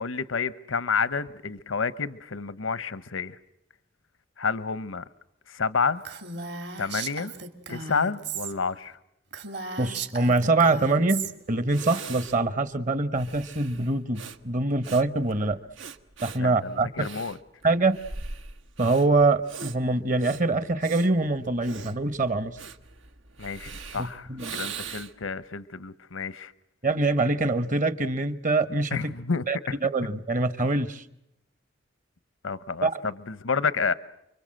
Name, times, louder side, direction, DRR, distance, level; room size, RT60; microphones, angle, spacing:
voice 1, 0.0-3.4 4.4-5.0 5.5-6.0 6.8-7.3 7.7-9.0 16.4-17.4 23.4-26.5 28.9-29.8 32.4-33.9, left 5 dB, 90° left, 16 dB, 0.9 m, -29 dB
Female speech woman speaking, 6.0-8.5 8.9-9.0 9.3-11.3, right 5 dB, 55° right, 2.6 m, -36 dB
voice 2, 9.8-15.6 16.2-17.1 17.6-18.0 18.8-22.6 24.0-24.6 26.8-29.0 29.5-31.0 32.8-32.9, right 3 dB, 40° right, 14 dB, 1.2 m, -24 dB
Breathing, 11.3-11.4 11.7-25.3, right 5 dB, 80° right, 1.4 m, -42 dB
30.0 x 23.5 x 7.7 m, 0.81 s
head